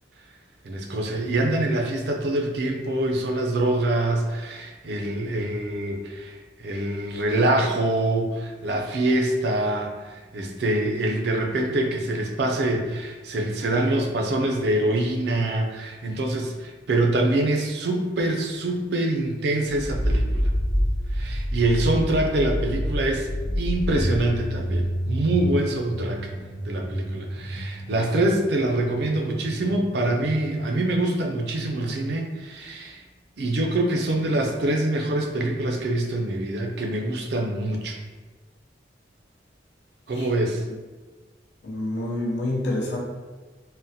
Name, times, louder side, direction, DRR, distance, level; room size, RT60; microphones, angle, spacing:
voice 1, 0.6-20.5 21.1-23.3 23.6-26.3 26.6-33.0 33.4-38.0 40.1-40.6, right 1 dB, 65° right, 2 dB, 0.4 m, -25 dB
sound 1, 19.7-30.6, equal, ahead, 0.4 m, -28 dB
voice 2, 41.6-43.0, left 1 dB, 75° left, -2 dB, 0.7 m, -27 dB
3.7 x 2.0 x 2.7 m, 1.3 s
head